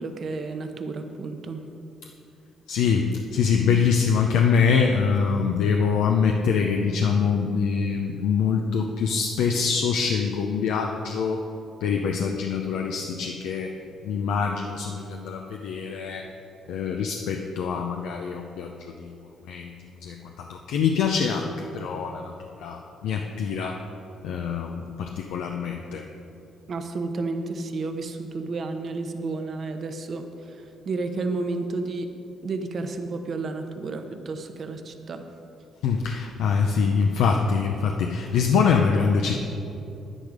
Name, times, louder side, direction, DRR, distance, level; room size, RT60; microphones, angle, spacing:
voice 1, 0.0-1.6 26.7-32.1 32.4-35.2, right 3 dB, 50° right, 6 dB, 1.0 m, -31 dB
voice 2, 2.7-11.4 11.8-13.8 14.0-16.3 16.7-19.7 20.0-22.3 22.6-23.8 24.2-26.0 35.8-39.4, left 6 dB, 90° left, 2 dB, 0.6 m, -24 dB
10.0 x 10.0 x 5.1 m, 2.8 s
cardioid pair, 90°, 0 cm